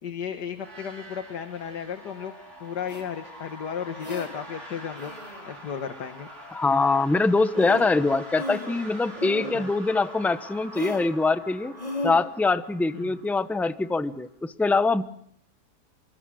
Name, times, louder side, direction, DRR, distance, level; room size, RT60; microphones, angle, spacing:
voice 1, 0.0-2.3 2.6-5.1 5.5-6.3 9.5-9.7 12.9-13.2, left 7 dB, 80° left, 8 dB, 2.1 m, -34 dB
sound 1, 0.5-14.3, equal, 45° right, 6.1 m, -45 dB
sound 2, 2.9-3.0 4.0-4.3 5.0-5.5 7.2-7.3 7.5-8.0 8.3-8.9 9.2-9.6 10.7-11.1 11.8-12.2, left 1 dB, 20° left, 5.2 m, -34 dB
voice 2, 6.5-11.7 12.0-15.0, left 3 dB, ahead, 12 dB, 0.7 m, -23 dB
27.5 x 23.5 x 6.4 m, 0.66 s
omnidirectional pair, 1.8 m